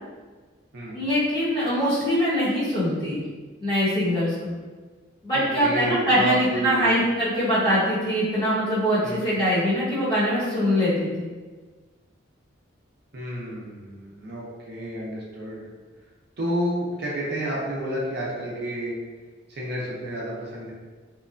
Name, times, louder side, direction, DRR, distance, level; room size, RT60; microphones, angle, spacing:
voice 1, 0.9-3.2 3.6-4.5 5.2-11.3, equal, 20° left, -11 dB, 1.1 m, -23 dB
voice 2, 5.3-7.0 9.0-9.2 13.1-15.7 16.4-19.0 19.5-20.7, equal, 55° right, -5 dB, 0.6 m, -30 dB
2.8 x 2.2 x 2.5 m, 1.4 s
head